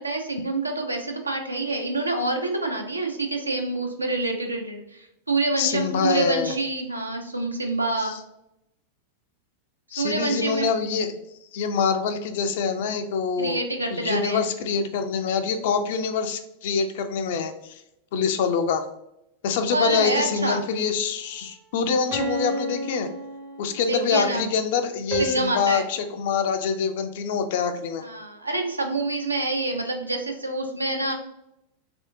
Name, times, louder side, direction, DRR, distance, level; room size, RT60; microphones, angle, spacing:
voice 1, 0.0-8.2 10.0-10.7 13.4-14.5 19.7-20.6 23.9-24.4 25.2-25.8 28.0-31.1, right 2 dB, 85° right, 3 dB, 0.5 m, -27 dB
voice 2, 5.6-6.5 8.0-8.2 9.9-11.1 11.5-13.6 13.9-17.8 18.1-18.9 19.4-23.1 23.6-28.0, left 6 dB, 55° left, 8 dB, 0.4 m, -25 dB
sound 1, 20.0-21.0 22.1-24.0 25.1-25.5, right 1 dB, 45° right, 0.8 m, -32 dB
3.4 x 2.6 x 2.5 m, 0.82 s
figure-of-eight pair, 90°, 0 cm